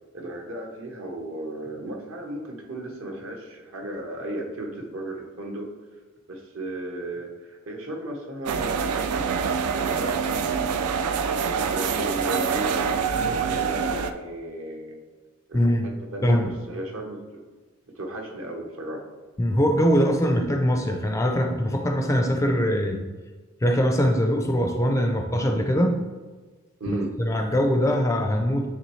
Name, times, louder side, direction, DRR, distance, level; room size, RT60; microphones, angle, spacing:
voice 1, 0.1-5.7 6.3-10.9 11.6-15.0 15.5-15.6 16.1-17.4 18.0-19.0 26.8-27.1, right 1 dB, 65° right, 2 dB, 1.1 m, -34 dB
sound 1, 8.5-14.1, right 6 dB, 85° right, 0.4 m, -25 dB
voice 2, 15.5-15.9 16.2-16.5 19.4-23.0 23.6-26.0 26.9-28.7, equal, 15° left, 3 dB, 0.4 m, -22 dB
9.4 x 3.4 x 3.2 m, 1.3 s
head